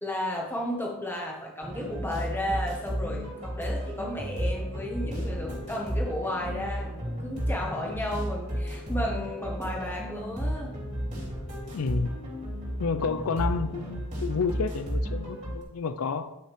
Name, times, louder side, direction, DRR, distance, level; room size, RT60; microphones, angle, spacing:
voice 1, 0.0-10.7, left 1 dB, 10° left, -1 dB, 1.4 m, -33 dB
sound 1, 1.6-15.6, equal, 35° right, 2.8 m, -33 dB
voice 2, 11.7-12.2 12.8-16.3, left 5 dB, 80° left, 11 dB, 0.5 m, -30 dB
10.0 x 5.6 x 3.5 m, 0.92 s
head